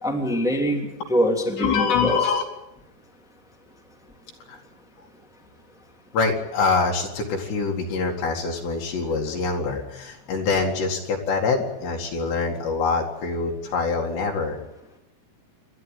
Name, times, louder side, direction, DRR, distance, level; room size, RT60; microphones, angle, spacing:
voice 1, 0.0-2.2, equal, ahead, 1 dB, 1.9 m, -24 dB
voice 2, 1.6-2.4 4.5-4.6 6.1-14.6, left 4 dB, 65° left, 0 dB, 4.0 m, -24 dB
28.5 x 12.5 x 9.2 m, 0.96 s
omnidirectional pair, 5.5 m